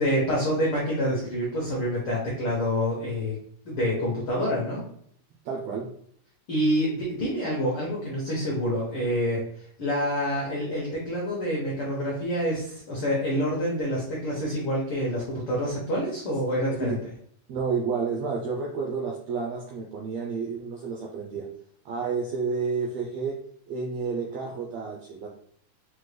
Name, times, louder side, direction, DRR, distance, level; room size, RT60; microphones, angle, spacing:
voice 1, 0.0-3.4 3.6-4.8 6.5-9.4 9.8-17.0, equal, 80° left, -4 dB, 1.2 m, -27 dB
voice 2, 5.4-5.9 16.8-17.0 17.5-21.5 21.8-23.4 23.7-25.3, right 5 dB, 80° right, -1 dB, 1.5 m, -30 dB
5.8 x 2.1 x 3.2 m, 0.64 s
omnidirectional pair, 3.7 m